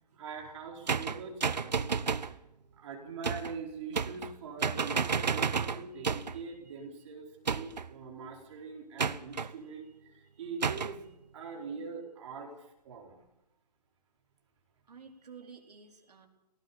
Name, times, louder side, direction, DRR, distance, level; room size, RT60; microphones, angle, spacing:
voice 1, 0.0-2.3 2.8-11.1 11.3-13.2, right 5 dB, 45° right, 0 dB, 4.7 m, -43 dB
sound 1, 0.9-2.4 3.2-3.6 3.9-4.4 4.6-6.4 7.5-7.9 9.0-9.5 10.6-11.0, right 5 dB, 85° right, 0.9 m, -31 dB
voice 2, 5.9-6.7 9.6-10.0 10.3-10.4 14.9-16.3, right 5 dB, 65° right, 3 dB, 4.3 m, -54 dB
20.5 x 18.0 x 7.2 m, 0.91 s
hypercardioid pair, 145°, 21 cm